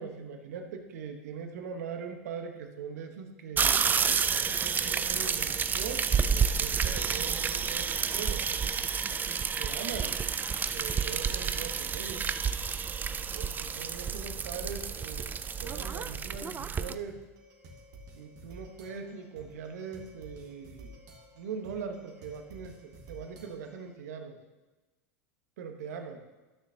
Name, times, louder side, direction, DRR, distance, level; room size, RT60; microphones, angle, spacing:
voice 1, 0.0-3.9 4.5-8.5 9.6-10.2 10.7-12.3 13.3-15.3 15.6-17.2 18.1-21.0 21.3-24.4 25.6-26.2, right 6 dB, 75° right, 5 dB, 1.1 m, -41 dB
sound 1, 3.6-16.9, right 6 dB, 20° right, 0.4 m, -30 dB
sound 2, 17.1-23.9, right 1 dB, 50° right, 1.8 m, -52 dB
13.0 x 6.1 x 2.8 m, 1.2 s
hypercardioid pair, 95°, 9 cm